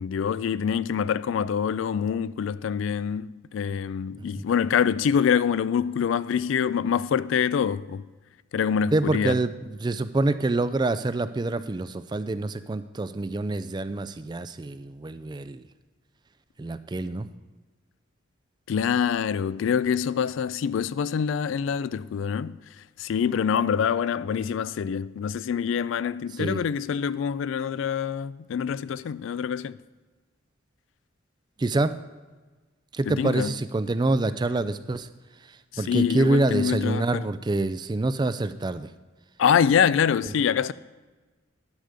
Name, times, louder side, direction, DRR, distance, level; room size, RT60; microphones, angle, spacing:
voice 1, 0.0-8.0 8.5-9.4 18.7-22.6 23.0-29.8 33.1-33.6 35.7-37.2 39.4-40.7, left 7 dB, 70° left, 0.3 m, -25 dB
voice 2, 8.9-15.6 16.6-17.3 26.4-26.6 31.6-32.0 32.9-35.1 35.8-38.9, right 2 dB, 20° right, 0.3 m, -26 dB
11.5 x 4.9 x 6.8 m
head